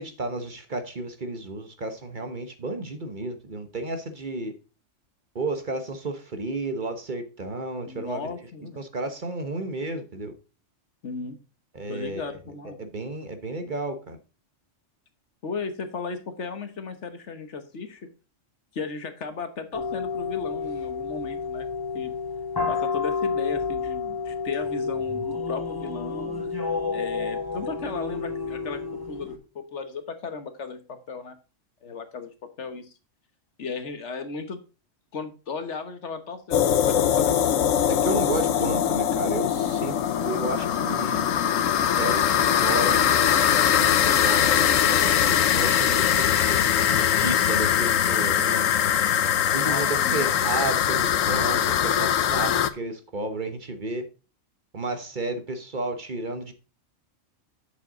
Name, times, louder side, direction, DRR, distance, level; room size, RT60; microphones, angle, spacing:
voice 1, 0.0-4.5 5.3-8.3 8.8-10.3 11.7-12.3 12.6-14.2 37.9-40.0 40.2-41.4 41.8-48.7 49.5-54.1 54.7-56.5, right 2 dB, 40° right, 1.1 m, -32 dB
voice 2, 7.8-8.8 11.0-11.4 11.9-12.8 15.4-18.1 18.7-21.7 21.9-22.1 22.7-26.3 26.9-28.8 29.1-31.3 31.8-32.9 33.6-34.6 35.1-37.6 49.6-50.3, left 4 dB, 65° left, 1.4 m, -35 dB
sound 1, 19.7-29.4, left 5 dB, 15° left, 1.5 m, -30 dB
sound 2, 36.5-52.7, left 9 dB, 80° left, 1.1 m, -22 dB
8.2 x 6.9 x 3.8 m
omnidirectional pair, 1.3 m